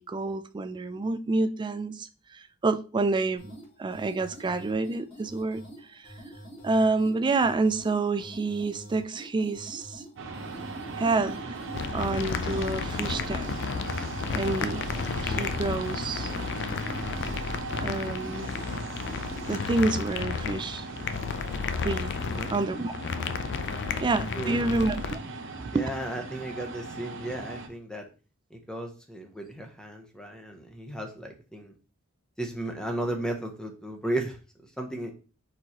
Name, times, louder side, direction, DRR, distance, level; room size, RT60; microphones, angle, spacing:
voice 1, 0.0-6.1 6.6-10.0 10.9-11.6 11.9-13.6 14.3-14.8 15.2-16.3 17.8-18.5 19.5-20.9 21.8-22.1 22.5-22.9 24.0-25.2 25.6-25.9, right 3 dB, 20° right, 0.3 m, -28 dB
sound 1, 3.4-19.6, right 1 dB, 25° left, 2.0 m, -47 dB
sound 2, 10.2-27.7, right 3 dB, 60° right, 0.8 m, -38 dB
sound 3, 11.7-25.2, left 6 dB, 55° left, 0.4 m, -33 dB
voice 2, 22.2-22.6 23.9-24.0 24.3-24.7 25.7-28.1 28.5-31.7 32.4-34.4 34.8-35.1, right 1 dB, 5° left, 0.8 m, -35 dB
4.5 x 3.9 x 2.9 m
head